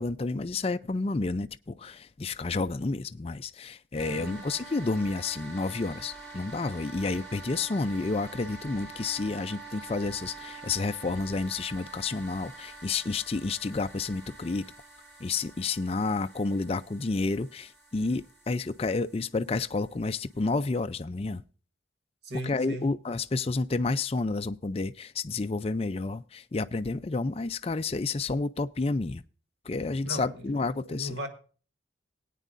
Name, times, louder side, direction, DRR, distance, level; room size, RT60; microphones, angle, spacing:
voice 1, 0.0-14.6 15.2-21.4 22.4-29.2 29.7-31.2, left 3 dB, 30° left, 0.4 m, -30 dB
sound 1, 4.0-20.7, right 3 dB, ahead, 4.9 m, -47 dB
voice 2, 4.1-4.5 22.2-22.9 30.0-30.6 30.9-31.3, equal, 55° right, 1.8 m, -38 dB
18.0 x 9.2 x 2.5 m
head